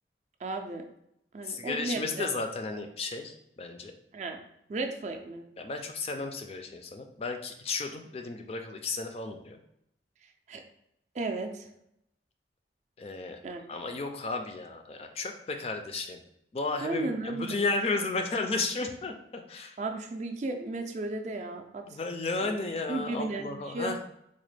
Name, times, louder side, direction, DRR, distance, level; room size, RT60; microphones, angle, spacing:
voice 1, 0.4-0.8 1.3-2.3 4.1-4.4 4.7-5.4 10.5-10.6 11.1-11.7 13.4-13.6 16.8-17.7 19.8-21.8 22.4-22.6 22.9-23.9, right 2 dB, 40° right, 4 dB, 0.4 m, -34 dB
voice 2, 1.4-3.9 5.6-9.6 13.0-13.4 13.7-16.2 16.5-19.8 21.9-24.0, left 3 dB, 35° left, 5 dB, 0.3 m, -33 dB
3.9 x 2.1 x 3.2 m, 0.78 s
head